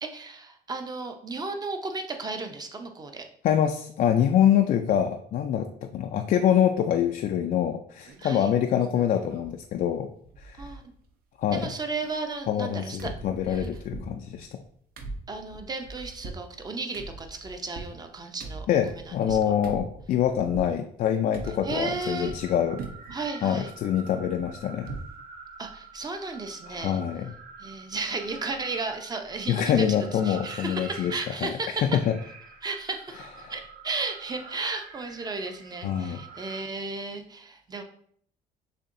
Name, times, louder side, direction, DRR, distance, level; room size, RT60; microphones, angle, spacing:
voice 1, 0.0-3.3 8.2-8.5 10.6-10.8 11.5-13.1 13.5-13.7 15.3-19.5 21.6-22.3 23.1-23.7 25.6-27.0 27.6-31.9 32.6-33.2 33.5-37.8, right 3 dB, 25° right, 5 dB, 0.7 m, -34 dB
voice 2, 3.4-10.1 10.4-10.7 11.4-11.7 12.5-14.5 18.7-22.8 23.4-24.9 26.7-27.3 29.5-31.5 31.8-32.1 33.4-33.5 35.8-36.2, left 9 dB, 55° left, 5 dB, 0.4 m, -25 dB
sound 1, 8.1-8.4 8.8-9.6 9.9-10.0 10.2-11.1 11.4-12.7 13.0-20.8 21.3-22.5 22.8-23.2 23.6-25.2 25.5-25.6 26.0-26.1, right 3 dB, 65° right, 0.8 m, -42 dB
sound 2, 21.4-36.6, right 4 dB, 50° right, 1.1 m, -47 dB
6.7 x 2.8 x 2.6 m, 0.63 s
cardioid pair, 110°, 17 cm